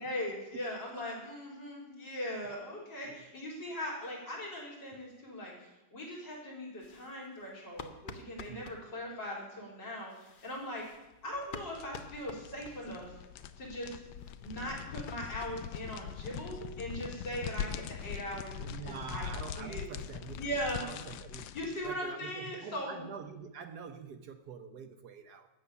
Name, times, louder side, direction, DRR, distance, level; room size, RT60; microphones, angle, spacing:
voice 1, 0.0-5.5 5.9-10.9 11.2-13.2 13.6-14.0 14.4-19.3 19.6-19.8 20.4-20.9 21.5-23.0, equal, 65° left, -4 dB, 4.7 m, -40 dB
sound 1, 6.8-8.8 10.0-13.1 13.4-13.5 13.7-13.8 14.1-16.2 16.4-16.5 16.9-17.0 17.3-17.4 17.6-18.5, left 4 dB, 50° left, 0.6 m, -50 dB
sound 2, 11.3-22.0, left 9 dB, 90° left, 1.4 m, -42 dB
voice 2, 18.6-20.5 20.8-21.4 21.8-25.5, right 6 dB, 65° right, 8 dB, 1.2 m, -45 dB
13.0 x 8.8 x 6.9 m, 0.98 s
omnidirectional pair, 2.0 m